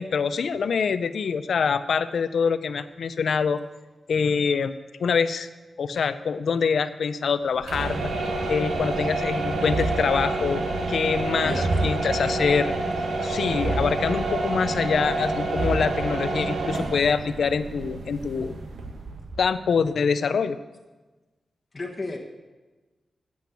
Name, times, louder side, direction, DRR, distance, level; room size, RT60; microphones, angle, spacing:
voice 1, 0.0-3.6 4.1-4.7 5.0-5.5 5.8-8.1 8.5-12.8 13.2-18.6 19.4-20.6, left 6 dB, 75° left, 13 dB, 0.5 m, -25 dB
sound 1, 7.6-19.4, right 2 dB, 75° right, 1.3 m, -28 dB
voice 2, 11.4-11.8 21.7-22.2, left 2 dB, 25° left, -1 dB, 1.3 m, -33 dB
8.4 x 8.3 x 7.9 m, 1.2 s
wide cardioid pair, 125°, 0 cm